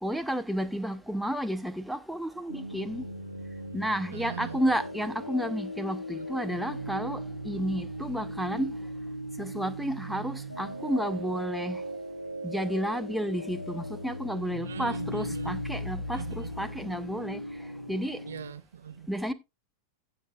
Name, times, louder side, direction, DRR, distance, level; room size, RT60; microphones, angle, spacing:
voice 1, 0.0-3.1 3.7-8.7 9.4-11.8 12.4-17.4 17.9-18.2 19.1-19.3, equal, ahead, 0.9 m, -31 dB
sound 1, 2.5-18.5, equal, 85° left, 1.2 m, -38 dB
voice 2, 4.1-4.6 14.6-15.6 16.1-16.5 18.3-19.1, right 8 dB, 65° right, 0.8 m, -41 dB
16.5 x 6.7 x 2.4 m
figure-of-eight pair, 90°, 0 cm